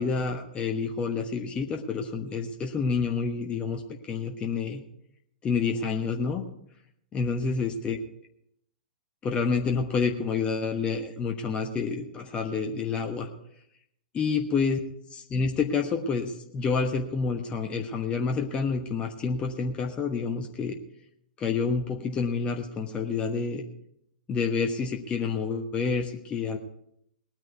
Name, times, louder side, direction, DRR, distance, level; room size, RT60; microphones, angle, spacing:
voice 1, 0.0-4.8 5.4-6.4 7.1-8.0 9.2-13.3 14.1-14.8 15.3-20.8 21.4-23.6 24.3-26.6, left 5 dB, 20° left, 3 dB, 1.3 m, -28 dB
19.5 x 9.6 x 4.6 m, 0.75 s
figure-of-eight pair, 105°, 5 cm